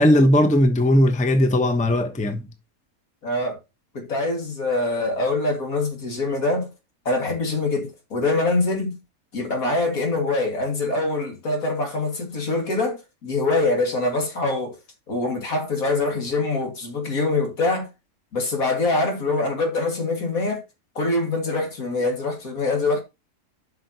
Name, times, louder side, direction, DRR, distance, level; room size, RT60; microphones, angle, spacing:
voice 1, 0.0-2.5, left 1 dB, 5° left, 0.7 m, -18 dB
voice 2, 3.2-3.6 3.9-6.7 7.1-9.0 9.3-14.7 15.1-17.9 18.3-20.6 21.0-23.0, left 2 dB, 70° left, 2.5 m, -24 dB
12.0 x 5.8 x 2.8 m
omnidirectional pair, 1.5 m